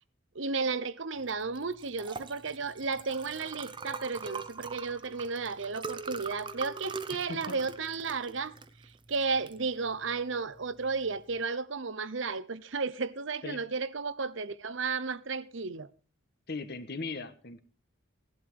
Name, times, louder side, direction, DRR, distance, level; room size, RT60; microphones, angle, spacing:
voice 1, 0.3-8.5 9.1-15.9, right 4 dB, 65° right, 0.9 m, -33 dB
Liquid, 1.2-11.4, right 4 dB, 25° right, 0.9 m, -43 dB
voice 2, 7.3-7.6 13.4-13.6 16.5-17.6, left 3 dB, 50° left, 1.4 m, -38 dB
17.0 x 11.5 x 4.7 m
head